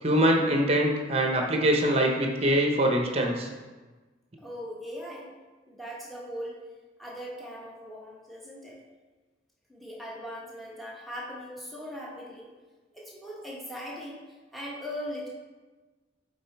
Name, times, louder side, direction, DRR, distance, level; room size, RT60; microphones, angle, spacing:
voice 1, 0.0-3.5, right 1 dB, 35° right, 2 dB, 0.9 m, -23 dB
voice 2, 4.4-5.3 5.7-6.6 7.0-8.8 9.7-12.5 12.9-14.2 14.5-15.3, equal, ahead, -5 dB, 1.3 m, -39 dB
7.2 x 3.9 x 4.6 m, 1.3 s
head